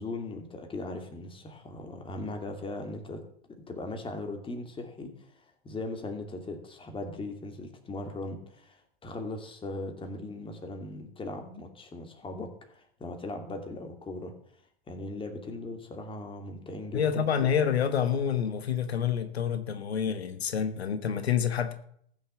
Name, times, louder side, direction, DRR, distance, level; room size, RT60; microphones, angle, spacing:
voice 1, 0.0-3.2 3.6-5.1 5.6-14.3 14.9-17.3, left 2 dB, 15° left, 4 dB, 2.7 m, -39 dB
voice 2, 16.9-21.7, left 8 dB, 85° left, 10 dB, 1.3 m, -28 dB
14.5 x 7.2 x 7.0 m, 0.66 s
hypercardioid pair, 105°, 31 cm